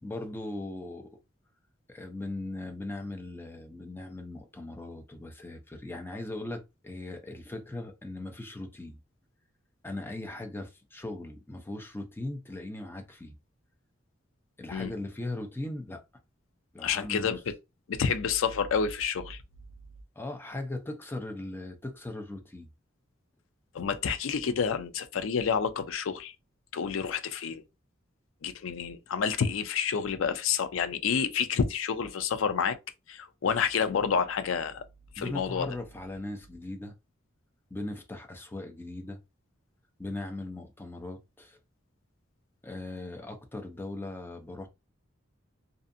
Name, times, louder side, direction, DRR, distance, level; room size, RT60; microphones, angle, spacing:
voice 1, 0.0-1.1 1.9-9.0 9.8-13.3 14.6-16.0 16.7-17.3 20.2-22.7 35.2-36.9 37.7-39.2 40.0-41.6 42.6-44.7, left 2 dB, 10° left, 0.5 m, -39 dB
voice 2, 16.8-17.5 17.9-19.4 23.7-26.3 26.7-27.6 28.4-32.8 33.1-34.8 35.1-35.7, left 6 dB, 85° left, 0.4 m, -29 dB
2.6 x 2.4 x 2.5 m
head